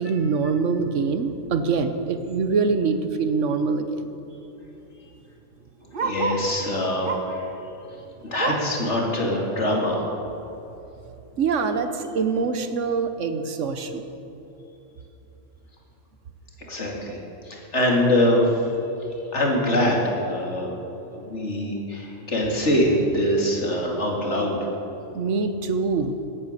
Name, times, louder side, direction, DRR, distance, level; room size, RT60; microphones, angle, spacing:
voice 1, 0.0-4.0 11.4-14.0 25.1-26.2, right 4 dB, 80° right, 8 dB, 1.3 m, -24 dB
Bark, 2.9-3.1 3.4-3.5 3.7-6.5 7.0-7.4 7.8-8.8 9.3-9.4 9.8-9.9 10.5-10.6, right 4 dB, 50° right, 1.1 m, -31 dB
voice 2, 6.0-7.4 8.2-10.0 16.7-18.6 19.3-20.7 21.1-24.7, left 1 dB, 70° left, -1 dB, 2.8 m, -23 dB
17.0 x 9.3 x 6.7 m, 3.0 s
omnidirectional pair, 1.2 m